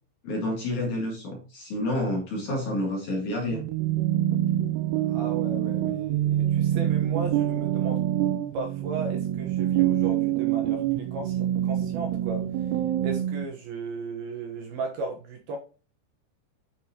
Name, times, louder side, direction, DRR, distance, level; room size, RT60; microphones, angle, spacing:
voice 1, 0.2-3.6, left 1 dB, 55° left, 2.6 m, -29 dB
sound 1, 3.5-13.5, right 12 dB, 85° right, 2.4 m, -26 dB
voice 2, 5.1-8.0 8.5-12.7 13.0-15.6, right 4 dB, 70° right, 2.6 m, -35 dB
11.0 x 5.4 x 2.8 m
omnidirectional pair, 5.4 m